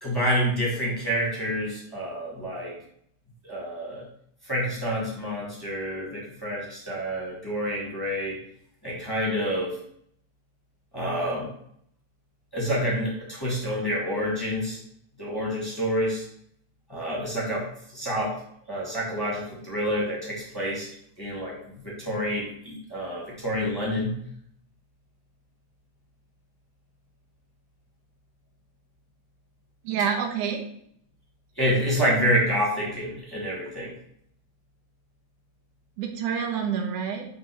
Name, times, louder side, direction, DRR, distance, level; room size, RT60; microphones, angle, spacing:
voice 1, 0.0-2.7 3.4-4.0 4.5-8.4 8.8-9.7 10.9-11.5 12.5-14.8 15.2-16.2 16.9-17.7 17.9-18.4 18.7-20.9 21.2-21.6 21.8-24.2 31.6-33.9, equal, 10° left, -5 dB, 2.1 m, -28 dB
voice 2, 29.8-30.6 36.0-37.3, right 7 dB, 85° right, 3 dB, 2.6 m, -27 dB
6.0 x 5.2 x 6.1 m, 0.68 s
omnidirectional pair, 3.5 m